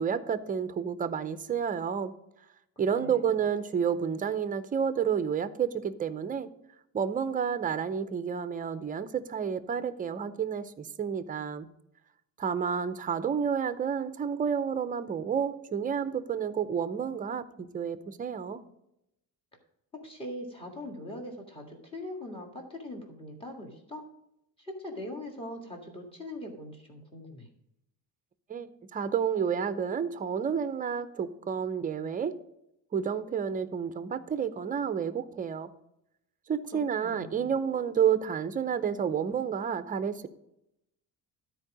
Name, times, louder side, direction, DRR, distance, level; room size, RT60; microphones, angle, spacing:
voice 1, 0.0-2.1 2.8-6.5 6.9-11.7 12.4-18.6 28.5-32.3 32.9-35.7 36.5-40.3, right 7 dB, 25° right, 12 dB, 0.5 m, -30 dB
voice 2, 2.9-3.4 19.9-24.0 24.6-27.5 36.7-37.5, left 1 dB, 15° left, 0 dB, 1.8 m, -41 dB
12.5 x 4.6 x 4.9 m, 0.83 s
cardioid pair, 160°, 37 cm